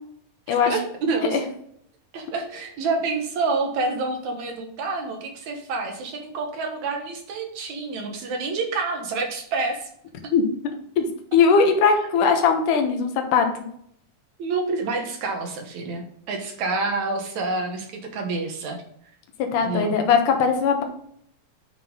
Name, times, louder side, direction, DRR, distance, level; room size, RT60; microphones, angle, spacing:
voice 1, 0.5-1.5 2.1-9.9 14.4-18.8 19.6-20.0, right 3 dB, 65° right, 3 dB, 2.4 m, -28 dB
voice 2, 11.3-13.5 19.5-20.8, left 5 dB, 80° left, 5 dB, 2.6 m, -19 dB
9.5 x 5.7 x 3.7 m, 0.69 s
omnidirectional pair, 3.8 m